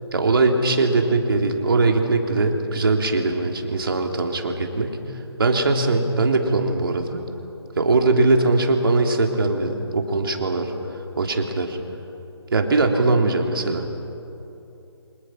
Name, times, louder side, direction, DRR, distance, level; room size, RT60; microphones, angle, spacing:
voice 1, 0.1-5.0 5.4-7.2 7.8-10.7 11.2-11.8 12.5-13.8, right 3 dB, 55° right, 3 dB, 3.3 m, -21 dB
29.0 x 26.0 x 6.3 m, 2.9 s
figure-of-eight pair, 155°, 14 cm